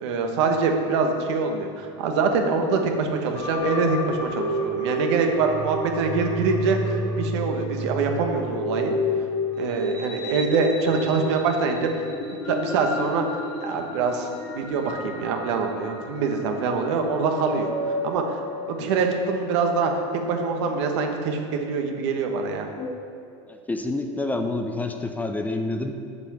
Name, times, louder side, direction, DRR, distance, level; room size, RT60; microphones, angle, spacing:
voice 1, 0.0-8.9 9.6-12.0 12.5-14.3 14.5-17.7 18.0-18.4 18.7-22.7, right 4 dB, 75° right, 3 dB, 1.3 m, -24 dB
sound 1, 3.3-22.9, equal, 35° left, 1.8 m, -32 dB
voice 2, 23.5-26.2, left 2 dB, 10° left, 5 dB, 0.7 m, -28 dB
7.8 x 6.0 x 7.3 m, 2.5 s
supercardioid pair, 120°, 15 cm